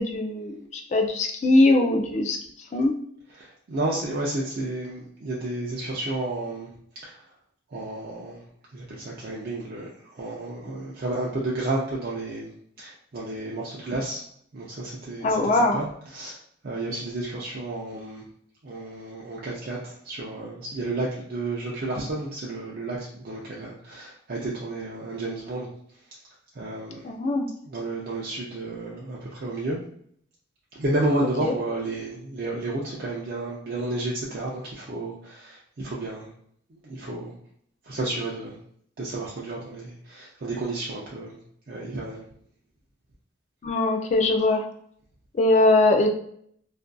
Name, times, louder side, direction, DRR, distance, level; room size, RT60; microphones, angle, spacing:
voice 1, 0.0-2.4 2.7-2.9 15.2-15.8 27.0-27.5 43.6-44.6 45.4-46.1, left 2 dB, 35° left, 3 dB, 0.3 m, -21 dB
voice 2, 3.3-6.7 7.0-7.2 7.7-8.4 8.7-14.2 14.5-16.4 16.6-18.3 18.6-25.7 26.5-29.8 30.7-36.3 36.7-37.4 37.8-38.6 39.0-41.4 41.7-42.2, right 2 dB, 50° right, -4 dB, 0.4 m, -31 dB
2.5 x 2.4 x 2.2 m, 0.64 s
head